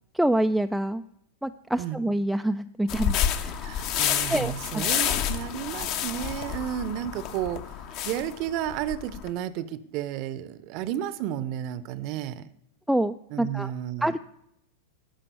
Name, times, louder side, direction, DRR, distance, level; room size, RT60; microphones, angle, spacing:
voice 1, 0.1-1.0 1.4-3.6 4.3-5.1 12.9-13.7 14.0-14.2, right 1 dB, ahead, 7 dB, 0.4 m, -27 dB
sound 1, 2.9-9.3, left 9 dB, 40° left, 1.0 m, -29 dB
voice 2, 3.6-7.7 8.0-12.5 13.3-14.1, right 11 dB, 40° right, 16 dB, 0.8 m, -32 dB
13.0 x 6.0 x 9.4 m, 0.77 s
figure-of-eight pair, 90°, 0 cm